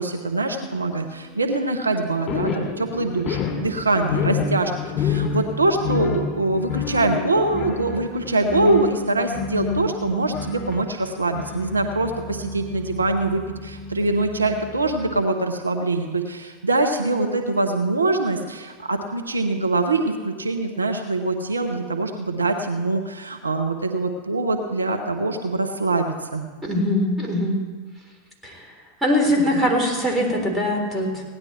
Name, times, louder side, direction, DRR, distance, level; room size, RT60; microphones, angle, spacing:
voice 1, 0.0-4.7 5.0-26.4, right 2 dB, 90° right, 5 dB, 1.0 m, -23 dB
sound 1, 2.3-15.2, left 5 dB, 30° left, 2.8 m, -29 dB
voice 2, 26.6-27.6 28.4-28.7 29.0-31.2, left 1 dB, 15° right, 0 dB, 3.7 m, -22 dB
17.5 x 10.5 x 4.4 m, 1.4 s
hypercardioid pair, 90°, 0 cm